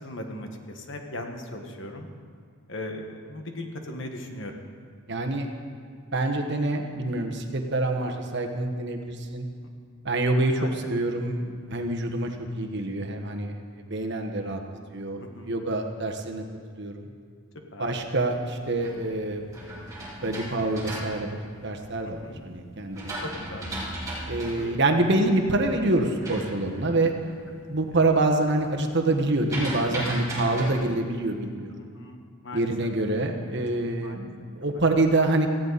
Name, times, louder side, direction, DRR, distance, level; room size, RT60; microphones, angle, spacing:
voice 1, 0.0-2.1 2.7-4.5 10.6-11.0 15.2-15.6 17.7-17.9 22.2-22.4 23.2-23.6 24.6-24.7 30.6-30.7 31.9-32.9 34.0-34.2, left 1 dB, 55° left, 3 dB, 1.6 m, -38 dB
voice 2, 5.1-5.5 6.1-9.4 10.0-13.5 13.9-14.6 14.9-16.4 16.8-17.1 17.8-19.4 20.2-21.4 21.6-23.2 24.3-27.1 27.7-31.7 32.5-35.5, right 2 dB, 50° right, 3 dB, 1.3 m, -26 dB
sound 1, 18.3-22.1 22.6-27.5 27.8-28.2 28.5-30.7, right 1 dB, 15° right, 4.0 m, -37 dB
18.0 x 15.0 x 4.2 m, 2.2 s
head